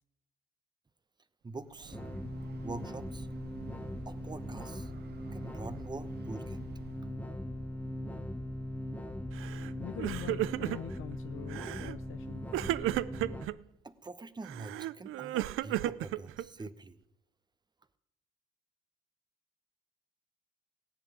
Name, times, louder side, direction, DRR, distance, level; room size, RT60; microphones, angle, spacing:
voice 1, 1.4-2.0 2.6-3.3 4.1-4.9 5.3-6.6 13.8-17.0, right 3 dB, 20° right, 14 dB, 0.9 m, -44 dB
Breathing / Train, 1.5-7.3, right 8 dB, 50° right, 0.8 m, -51 dB
sound 1, 1.9-13.5, left 1 dB, 5° left, 1.1 m, -40 dB
Crying sobbing, 9.4-9.7 10.0-11.0 11.5-12.0 12.5-13.6 14.4-16.7, right 15 dB, 75° right, 0.5 m, -34 dB
voice 2, 9.8-12.6, left 13 dB, 75° left, 10 dB, 0.6 m, -44 dB
16.5 x 7.2 x 8.8 m, 0.90 s
cardioid pair, 80°, 21 cm